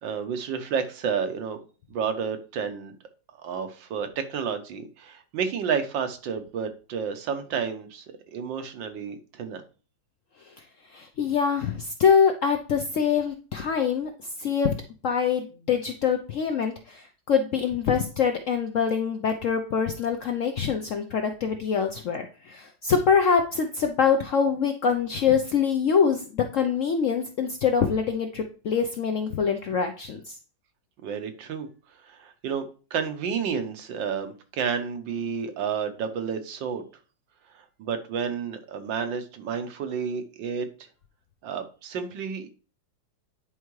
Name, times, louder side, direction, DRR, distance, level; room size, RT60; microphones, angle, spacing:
voice 1, 0.0-1.6 1.9-2.9 3.4-9.6 31.0-31.7 32.0-32.6 32.9-36.8 37.8-40.7 41.4-42.5, right 6 dB, 80° right, 8 dB, 1.6 m, -30 dB
voice 2, 10.9-14.1 14.4-14.7 15.0-30.3, left 6 dB, 70° left, 5 dB, 0.7 m, -24 dB
9.7 x 4.5 x 3.1 m, 0.36 s
omnidirectional pair, 2.0 m